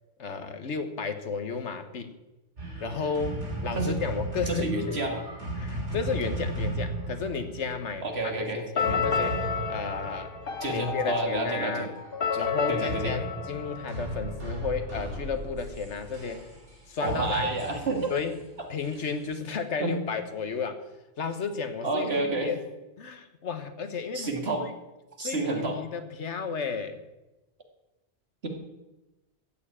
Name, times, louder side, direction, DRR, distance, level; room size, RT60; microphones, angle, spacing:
voice 1, 0.2-2.2 2.8-5.0 5.6-9.4 9.7-10.3 10.7-11.9 12.3-16.5 16.9-17.5 18.1-18.4 18.7-20.8 21.2-22.6 23.0-24.3 24.6-24.7 25.2-27.0, left 5 dB, 85° left, 9 dB, 1.5 m, -33 dB
sound 1, 2.6-11.0 12.8-19.6, right 2 dB, 85° right, 3.4 m, -36 dB
voice 2, 4.5-5.2 8.0-8.6 10.6-11.9 12.7-13.2 17.0-18.1 19.8-20.0 21.8-22.5 24.1-24.7 25.2-25.8, right 2 dB, 65° right, 2 dB, 2.5 m, -29 dB
sound 2, 8.8-14.5, left 6 dB, 55° left, 1.3 m, -31 dB
14.5 x 7.1 x 8.6 m, 1.0 s
omnidirectional pair, 1.2 m